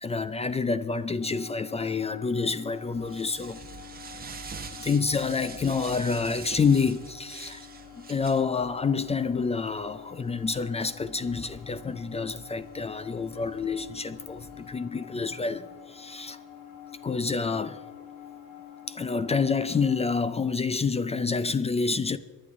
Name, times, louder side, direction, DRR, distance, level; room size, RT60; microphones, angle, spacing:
voice 1, 0.0-3.6 4.8-7.7 8.0-16.4 17.0-17.8 18.9-22.2, left 5 dB, 20° left, 0.4 m, -28 dB
sound 1, 1.2-20.2, left 10 dB, 60° left, 1.9 m, -47 dB
sound 2, 2.4-14.8, right 5 dB, 25° right, 1.2 m, -46 dB
24.0 x 10.5 x 3.7 m
cardioid pair, 125°, 38 cm